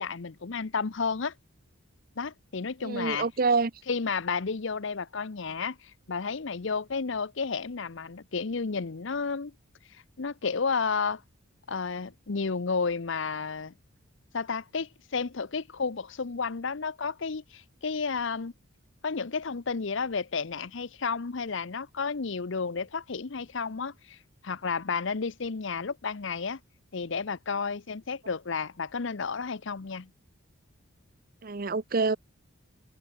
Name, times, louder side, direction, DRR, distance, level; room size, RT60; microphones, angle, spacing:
voice 1, 0.0-1.3 2.2-3.3 3.9-9.5 10.2-11.2 11.7-13.7 14.3-18.5 19.0-24.2 24.4-26.6 26.9-30.1, left 5 dB, 60° left, 0.7 m, -32 dB
voice 2, 2.8-3.7 31.4-32.2, right 4 dB, 45° right, 0.7 m, -26 dB
head